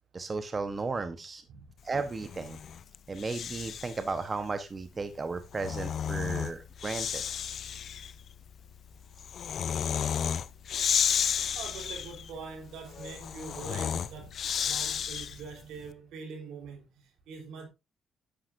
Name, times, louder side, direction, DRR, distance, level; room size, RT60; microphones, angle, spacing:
voice 1, 0.1-1.4 1.8-2.6 3.1-7.2, right 4 dB, 30° right, 1.0 m, -34 dB
Breathing, 2.1-4.1 5.3-15.6, left 8 dB, 60° left, 0.5 m, -33 dB
voice 2, 11.5-17.7, right 5 dB, 85° right, 3.4 m, -44 dB
10.0 x 8.8 x 2.6 m
cardioid pair, 90°, 0 cm